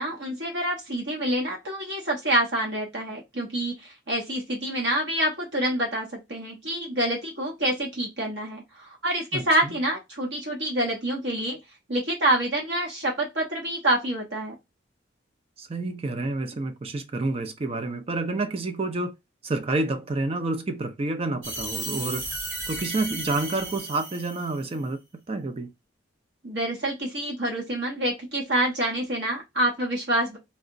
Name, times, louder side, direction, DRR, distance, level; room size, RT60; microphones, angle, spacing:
voice 1, 0.0-11.6 11.9-14.5 26.4-30.4, right 1 dB, 65° right, 1.0 m, -27 dB
voice 2, 9.3-9.8 15.6-19.1 19.4-22.2 22.7-25.0 25.3-25.7, right 2 dB, 30° right, 0.4 m, -29 dB
sound 1, 21.4-24.7, right 2 dB, 85° right, 1.9 m, -34 dB
3.2 x 2.9 x 2.6 m
head